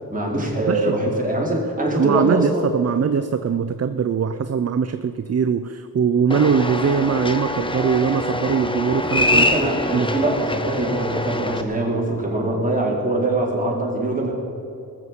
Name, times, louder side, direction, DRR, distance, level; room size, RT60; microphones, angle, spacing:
voice 1, 0.1-2.7 9.3-14.3, right 1 dB, 20° right, -2 dB, 4.0 m, -23 dB
voice 2, 0.7-1.0 1.9-9.5 9.9-10.1, right 6 dB, 40° right, 11 dB, 0.6 m, -21 dB
sound 1, 6.3-11.6, left 1 dB, 15° left, 1.0 m, -24 dB
20.0 x 7.2 x 8.1 m, 2.8 s
wide cardioid pair, 85°, 37 cm